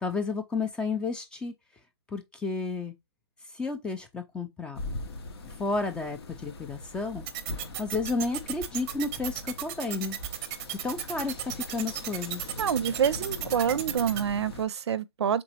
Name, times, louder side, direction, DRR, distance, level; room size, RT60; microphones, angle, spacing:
voice 1, 0.0-1.5 2.1-2.9 3.5-4.8 5.6-7.2 7.8-10.2 10.8-12.5, left 3 dB, 5° left, 0.4 m, -32 dB
sound 1, 4.7-14.6, left 2 dB, 70° left, 0.9 m, -41 dB
sound 2, 7.3-14.2, right 12 dB, 35° right, 0.6 m, -34 dB
voice 2, 12.6-15.4, right 8 dB, 90° right, 0.4 m, -27 dB
3.9 x 3.5 x 2.8 m
hypercardioid pair, 145°, 14 cm